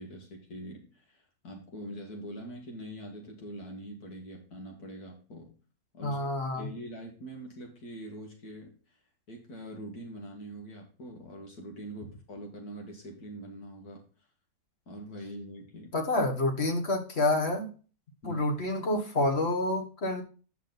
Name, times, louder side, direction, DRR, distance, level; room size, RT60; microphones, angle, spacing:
voice 1, 0.0-5.5 5.9-6.2 6.5-9.0 9.3-14.0 14.9-15.9 18.2-18.5, equal, 85° left, 0 dB, 2.5 m, -43 dB
voice 2, 6.0-6.7 15.9-17.7 18.2-20.2, left 2 dB, 45° left, 3 dB, 1.7 m, -28 dB
9.2 x 6.7 x 4.0 m, 0.36 s
omnidirectional pair, 1.6 m